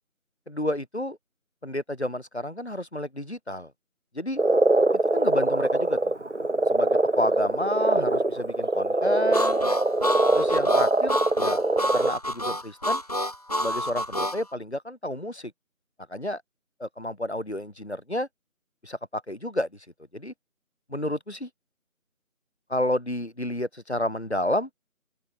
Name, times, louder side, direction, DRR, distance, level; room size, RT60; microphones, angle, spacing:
voice 1, 0.5-1.2 1.6-3.7 4.1-4.4 5.1-6.0 6.7-9.6 10.3-11.6 11.9-13.0 13.6-15.5 16.1-16.4 16.8-18.3 18.8-19.9 20.1-20.3 20.9-21.5 22.7-24.7, left 1 dB, 50° left, 7.3 m, -30 dB
Frog, 4.4-12.1, right 2 dB, 55° right, 1.4 m, -23 dB
Harmonica, 9.3-14.4, left 1 dB, 25° left, 6.7 m, -28 dB
open air
figure-of-eight pair, 180°, 42 cm